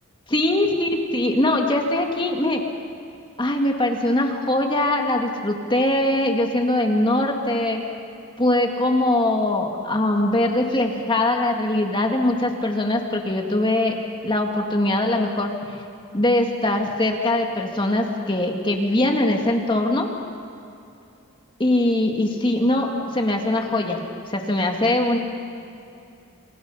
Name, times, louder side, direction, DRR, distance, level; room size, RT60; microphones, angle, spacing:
voice 1, 0.3-2.6 3.4-7.8 8.4-14.0 14.2-15.5 16.1-20.1 21.6-24.0 24.3-25.2, left 1 dB, 25° left, 2 dB, 2.0 m, -21 dB
28.5 x 27.0 x 5.6 m, 2.7 s
head